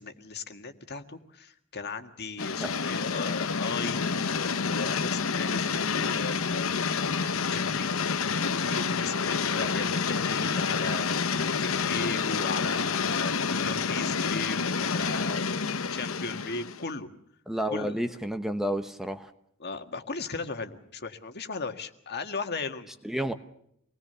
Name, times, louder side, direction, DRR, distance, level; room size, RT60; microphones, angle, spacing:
voice 1, 0.0-4.0 4.3-6.7 7.5-7.9 8.4-15.5 15.9-17.1 17.7-18.0 19.6-22.9, left 4 dB, 50° left, 7 dB, 1.8 m, -37 dB
sound 1, 2.4-16.9, left 5 dB, 70° left, 0.9 m, -28 dB
voice 2, 17.5-19.3 23.0-23.3, equal, ahead, 8 dB, 1.0 m, -30 dB
26.5 x 20.0 x 6.8 m, 0.74 s
head